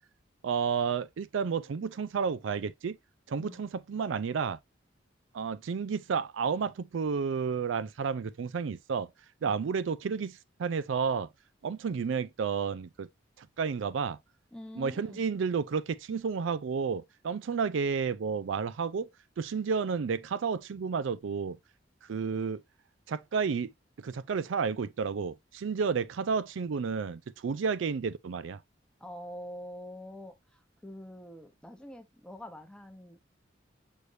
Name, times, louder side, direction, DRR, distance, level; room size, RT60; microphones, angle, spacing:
voice 1, 0.4-3.0 3.3-4.6 5.3-9.1 9.4-11.3 11.6-13.1 13.4-14.2 14.8-19.1 19.4-21.6 22.1-22.6 23.1-23.7 24.0-28.6, right 5 dB, 75° right, 0.4 m, -31 dB
voice 2, 14.5-15.2 29.0-33.3, equal, 5° left, 0.9 m, -45 dB
6.3 x 3.3 x 2.6 m
head